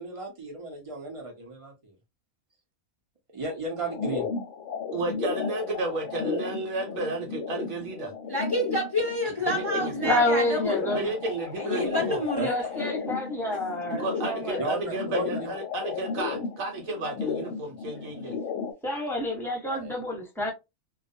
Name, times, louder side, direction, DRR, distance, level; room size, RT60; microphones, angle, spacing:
voice 1, 0.0-1.9 3.3-4.3 9.4-9.6 12.3-12.5 14.6-15.4 19.7-19.9, right 3 dB, 35° right, 0.5 m, -34 dB
sound 1, 3.8-18.7, left 5 dB, 70° left, 0.9 m, -34 dB
voice 2, 4.9-8.1 9.5-10.1 10.9-12.2 13.9-18.3, right 2 dB, 75° right, 1.1 m, -32 dB
voice 3, 8.3-10.8 11.6-12.9, left 1 dB, 35° left, 0.4 m, -29 dB
voice 4, 10.0-11.1 12.4-14.6 14.9-15.5 18.8-20.5, left 1 dB, ahead, 0.8 m, -28 dB
2.3 x 2.1 x 2.6 m
omnidirectional pair, 1.4 m